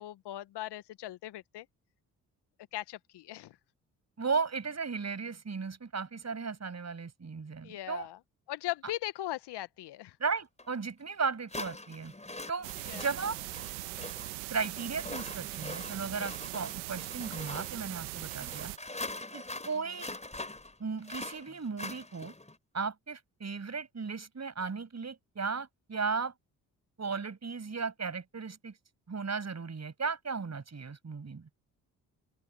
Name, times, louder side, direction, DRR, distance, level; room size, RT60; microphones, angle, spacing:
voice 1, 0.0-1.7 2.7-3.6 7.6-8.2 8.5-10.2 12.8-13.1 19.7-20.0, left 15 dB, 65° left, 1.4 m, -39 dB
voice 2, 4.2-8.1 10.2-12.1 12.5-13.4 14.5-18.7 19.3-20.1 20.8-22.3 22.7-26.3 27.0-28.7 29.1-31.5, right 5 dB, 35° right, 7.4 m, -35 dB
sound 1, 10.6-10.7 11.5-22.6, left 2 dB, 15° left, 5.0 m, -43 dB
sound 2, 12.6-18.8, right 25 dB, 80° right, 1.8 m, -40 dB
open air
hypercardioid pair, 45°, 44 cm